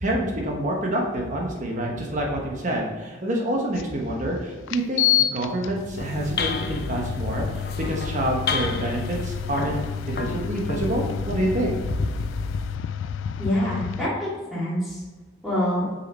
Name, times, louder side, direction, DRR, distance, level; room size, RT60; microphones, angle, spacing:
voice 1, 0.0-5.0 5.3-9.8 10.1-11.8, right 1 dB, 40° right, 0 dB, 1.1 m, -27 dB
sound 1, 3.8-3.9 4.7-14.1, left 10 dB, 90° left, 0.3 m, -30 dB
sound 2, 5.8-12.8, left 3 dB, 55° left, 0.6 m, -31 dB
voice 2, 13.4-15.0 15.4-15.9, equal, ahead, -8 dB, 2.4 m, -26 dB
6.4 x 5.7 x 4.2 m, 1.3 s
head